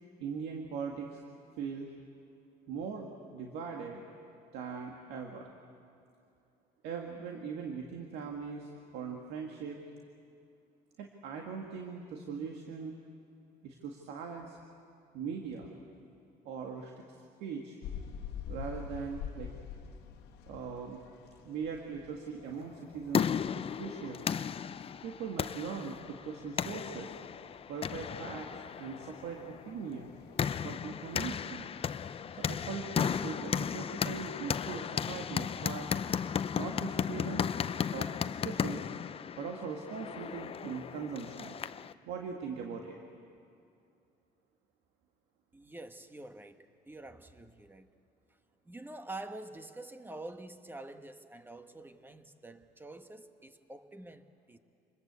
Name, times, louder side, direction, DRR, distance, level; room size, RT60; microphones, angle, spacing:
voice 1, 0.2-1.2 1.6-1.9 2.7-4.0 4.5-5.5 6.8-9.8 11.0-13.0 13.6-14.6 15.1-15.7 16.4-16.9 17.4-17.8 18.5-19.5 20.5-21.0 21.4-23.3 23.5-24.2 25.0-27.1 27.7-28.5 28.8-30.1 30.6-31.7 32.3-35.9 36.6-37.5 37.9-38.8 39.4-41.6 42.1-43.0, right 6 dB, 85° right, 2.0 m, -40 dB
sound 1, 17.8-37.5, left 7 dB, 85° left, 1.5 m, -50 dB
sound 2, 22.7-41.9, left 7 dB, 35° left, 0.5 m, -35 dB
voice 2, 45.5-47.9 48.6-54.6, right 2 dB, 10° right, 1.3 m, -47 dB
26.5 x 21.0 x 8.3 m
cardioid pair, 110°, 17 cm